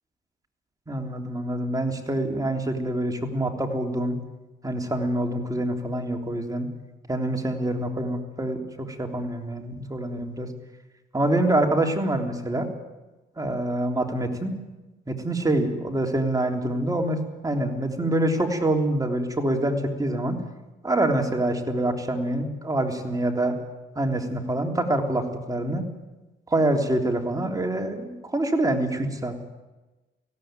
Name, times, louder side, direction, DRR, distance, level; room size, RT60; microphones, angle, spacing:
voice 1, 0.9-4.1 4.6-6.7 7.1-10.5 11.1-12.7 13.4-14.5 15.1-17.2 17.4-20.4 20.8-23.5 23.9-25.8 26.5-29.3, right 1 dB, 20° right, 3 dB, 3.4 m, -26 dB
18.5 x 16.5 x 9.1 m, 1.1 s
cardioid pair, 90°, 20 cm